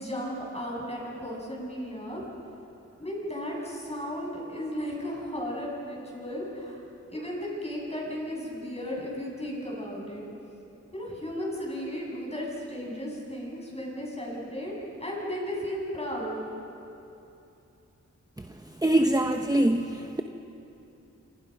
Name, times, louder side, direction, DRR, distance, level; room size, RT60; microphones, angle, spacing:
voice 1, 0.0-2.2 3.0-6.8 7.1-10.2 10.9-14.7 15.0-16.4, equal, 20° left, -3 dB, 7.8 m, -35 dB
voice 2, 18.8-20.2, right 1 dB, 10° right, 5 dB, 0.9 m, -24 dB
27.0 x 26.5 x 5.5 m, 2.8 s
wide cardioid pair, 80°, 29 cm